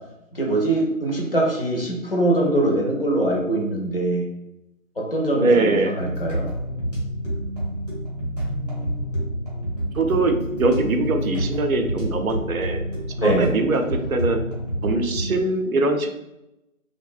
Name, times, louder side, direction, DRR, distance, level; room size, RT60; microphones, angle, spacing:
voice 1, 0.3-4.3 5.0-6.5 13.2-13.5, right 1 dB, 45° left, -1 dB, 0.4 m, -22 dB
voice 2, 5.3-5.9 9.9-12.8 13.2-14.4 14.8-16.2, right 2 dB, 80° right, 5 dB, 0.6 m, -22 dB
sound 1, 6.0-15.3, equal, 30° right, 0.7 m, -28 dB
2.6 x 2.1 x 2.3 m, 0.90 s
figure-of-eight pair, 165°, 42 cm